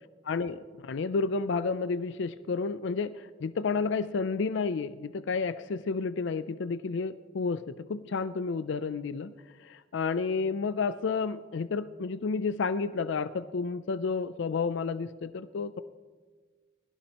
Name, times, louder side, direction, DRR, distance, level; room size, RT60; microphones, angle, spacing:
voice 1, 0.3-9.3 9.6-15.8, left 4 dB, 65° left, 13 dB, 0.4 m, -31 dB
20.5 x 15.5 x 2.9 m, 1.5 s
head